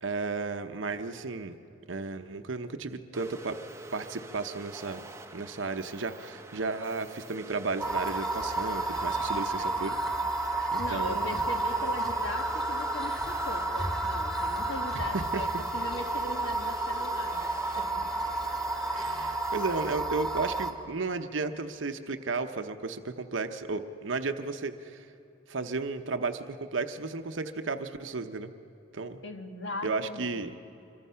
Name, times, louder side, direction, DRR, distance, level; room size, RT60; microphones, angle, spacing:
voice 1, 0.0-1.6 1.9-3.6 3.9-5.0 5.3-10.0 10.7-11.5 14.9-15.4 18.9-25.1 25.5-28.5 28.9-29.2 29.8-30.6, right 3 dB, 80° right, 8 dB, 0.9 m, -34 dB
sound 1, 3.1-19.9, right 2 dB, 15° right, 0.7 m, -46 dB
sound 2, 7.8-20.7, right 2 dB, ahead, 1.5 m, -31 dB
voice 2, 10.8-18.0 29.2-30.5, left 2 dB, 65° left, 5 dB, 1.4 m, -39 dB
26.0 x 24.0 x 5.7 m, 2.9 s
head